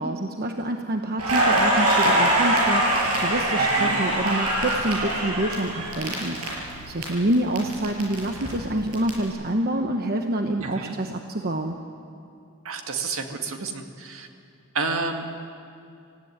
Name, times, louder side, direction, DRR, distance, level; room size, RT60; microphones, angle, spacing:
voice 1, 0.0-11.8, right 1 dB, 45° right, 4 dB, 1.1 m, -27 dB
Crackle, 1.2-7.0 7.3-9.1, right 1 dB, 90° right, 6.6 m, -23 dB
voice 2, 3.6-4.0 10.6-11.0 12.6-14.3 14.7-15.3, right 4 dB, 65° right, 5 dB, 2.1 m, -30 dB
26.0 x 16.0 x 9.7 m, 2.6 s
head